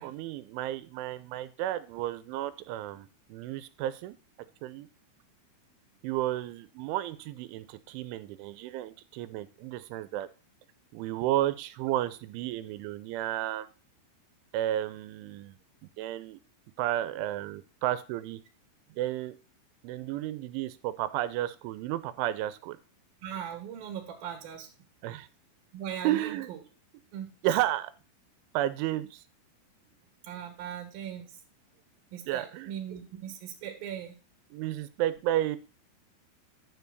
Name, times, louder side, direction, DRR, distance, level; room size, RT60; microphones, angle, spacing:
voice 1, 0.0-4.1 4.6-4.9 6.0-10.3 10.9-13.7 14.5-15.6 16.0-16.4 16.8-18.4 18.9-19.3 19.8-22.8 25.0-25.3 26.0-26.5 27.4-27.9 28.5-29.2 32.3-32.7 34.5-35.6, right 14 dB, 90° right, 14 dB, 3.2 m, -32 dB
voice 2, 23.2-24.7 25.7-26.6 27.1-27.4 30.2-31.4 32.1-34.2, right 9 dB, 60° right, 3 dB, 3.1 m, -39 dB
10.5 x 7.0 x 4.0 m, 0.34 s
omnidirectional pair, 5.4 m